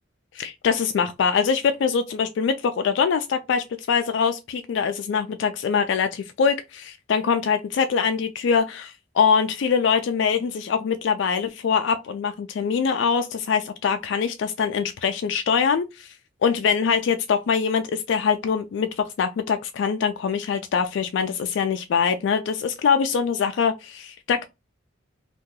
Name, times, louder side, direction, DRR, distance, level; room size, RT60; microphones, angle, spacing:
voice 1, 0.3-16.1 16.4-24.4, left 6 dB, 70° left, 0.3 m, -23 dB
2.7 x 2.2 x 3.7 m
head